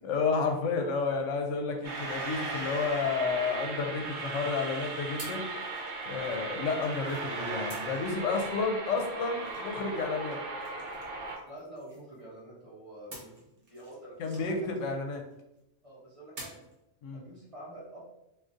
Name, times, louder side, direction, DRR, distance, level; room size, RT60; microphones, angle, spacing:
voice 1, 0.0-5.4 6.1-10.4 14.2-15.2 17.0-17.2, left 4 dB, 80° left, 3 dB, 0.9 m, -31 dB
sound 1, 1.8-11.4, right 3 dB, 70° right, 0.9 m, -37 dB
sound 2, 2.9-4.3 5.2-7.2 7.7-12.4 13.1-15.6 16.4-16.8, right 1 dB, 50° right, 1.1 m, -51 dB
voice 2, 11.4-13.4 13.7-14.7 15.8-16.6 17.1-18.1, right 1 dB, 30° right, -6 dB, 0.7 m, -47 dB
3.6 x 2.5 x 2.5 m, 0.86 s
omnidirectional pair, 1.3 m